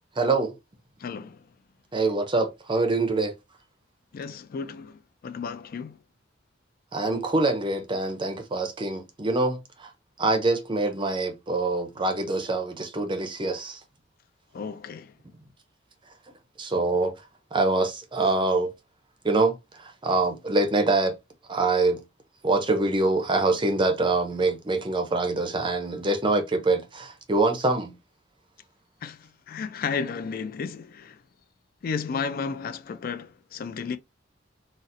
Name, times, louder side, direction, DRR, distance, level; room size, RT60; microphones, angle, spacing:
voice 1, 0.2-0.6 1.9-3.3 6.9-9.9 10.2-13.8 16.6-17.1 17.5-18.7 19.2-21.1 21.5-22.0 22.4-27.9, right 2 dB, 25° right, 0.5 m, -25 dB
voice 2, 1.0-1.4 4.1-6.0 14.5-15.1 29.0-31.2 31.8-34.0, left 5 dB, 50° left, 0.3 m, -33 dB
4.1 x 2.0 x 2.5 m
head